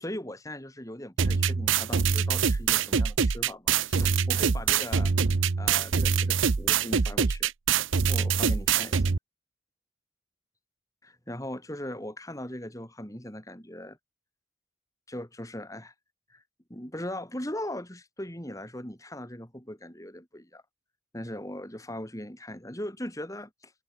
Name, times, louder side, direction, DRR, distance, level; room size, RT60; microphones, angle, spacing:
voice 1, 0.0-5.1 5.6-7.5 8.1-9.1 11.0-14.0 15.1-15.9 16.3-16.4 16.7-20.6 21.1-23.7, left 1 dB, 15° left, 5.1 m, -39 dB
sound 1, 1.2-9.2, right 6 dB, 85° right, 0.7 m, -24 dB
open air
head